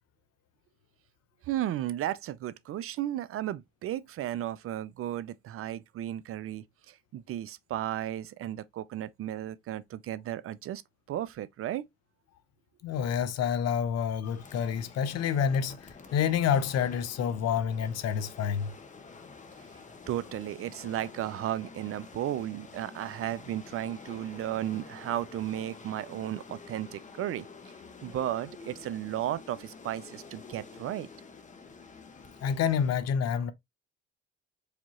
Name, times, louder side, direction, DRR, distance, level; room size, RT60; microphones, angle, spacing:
voice 1, 1.4-10.8 11.1-11.8 20.1-27.7 28.0-31.1, right 12 dB, 50° right, 0.5 m, -34 dB
voice 2, 12.8-15.8 16.1-18.7 32.4-33.5, left 8 dB, 60° left, 0.8 m, -28 dB
sound 1, 14.2-32.9, left 4 dB, 25° left, 1.0 m, -49 dB
4.9 x 2.8 x 2.9 m
supercardioid pair, 75°, 29 cm